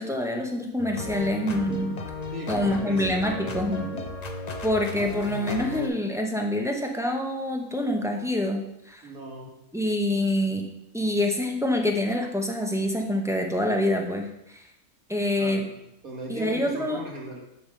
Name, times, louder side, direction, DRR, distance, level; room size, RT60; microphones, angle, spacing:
voice 1, 0.0-2.0 2.5-3.9 4.6-9.1 9.7-10.6 10.9-14.7 15.1-15.6 16.3-17.0, left 1 dB, 5° right, 1 dB, 0.5 m, -26 dB
sound 1, 0.8-5.9, left 3 dB, 40° left, 0.6 m, -35 dB
voice 2, 2.3-4.1 9.0-9.5 15.4-15.8 16.0-17.4, right 1 dB, 80° right, -3 dB, 2.3 m, -38 dB
7.8 x 3.4 x 6.5 m, 0.82 s
omnidirectional pair, 1.5 m